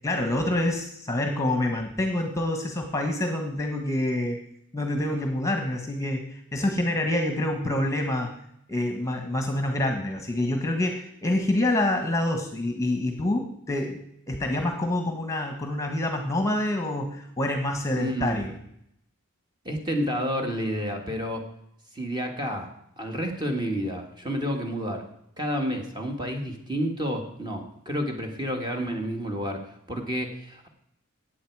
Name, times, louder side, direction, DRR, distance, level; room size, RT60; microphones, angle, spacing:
voice 1, 0.0-4.4 4.7-8.3 8.7-14.0 14.3-18.5, left 1 dB, 15° left, 5 dB, 1.3 m, -27 dB
voice 2, 17.9-18.4 19.7-21.4 21.9-25.1 25.4-30.7, equal, 20° right, 3 dB, 1.8 m, -30 dB
15.0 x 9.2 x 4.8 m, 0.74 s
head